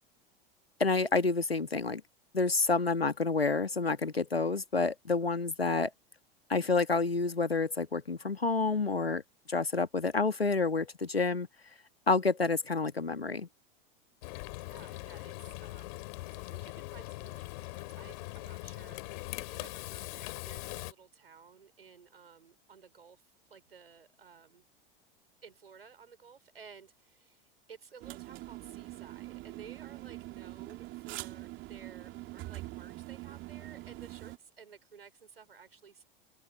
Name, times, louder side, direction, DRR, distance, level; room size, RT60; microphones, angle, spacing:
voice 1, 0.8-2.0 2.3-5.9 6.5-9.2 9.5-11.5 12.1-13.5, left 3 dB, 85° left, 1.7 m, -29 dB
Frying (food), 14.2-20.9, left 22 dB, 55° left, 3.1 m, -41 dB
voice 2, 14.6-23.2 23.5-24.6 25.4-36.0, right 6 dB, 80° right, 5.0 m, -55 dB
sound 1, 28.0-34.4, right 19 dB, 40° right, 3.7 m, -44 dB
open air
figure-of-eight pair, 85°, 29 cm